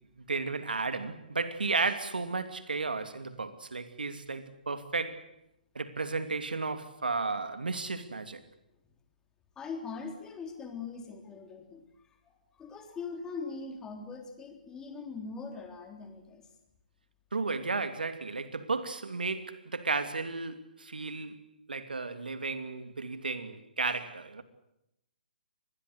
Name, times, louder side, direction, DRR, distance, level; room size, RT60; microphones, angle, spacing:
voice 1, 0.0-5.2 5.7-8.4 17.3-21.4 21.7-24.4, right 4 dB, 80° right, 2.7 m, -33 dB
voice 2, 9.6-11.8 12.3-16.5, left 4 dB, 15° left, 3.6 m, -41 dB
26.0 x 20.5 x 8.1 m
figure-of-eight pair, 135°, 5 cm